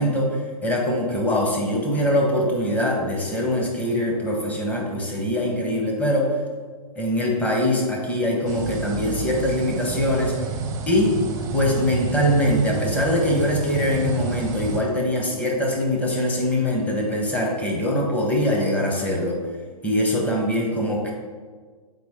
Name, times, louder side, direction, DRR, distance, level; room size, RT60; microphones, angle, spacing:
voice 1, 0.0-6.3 7.0-10.3 10.9-11.1 11.5-19.4 19.8-21.1, left 1 dB, 5° left, -1 dB, 1.0 m, -23 dB
sound 1, 8.5-14.8, right 5 dB, 15° right, 0.7 m, -29 dB
7.9 x 4.8 x 3.6 m, 1.5 s
hypercardioid pair, 135°, 20 cm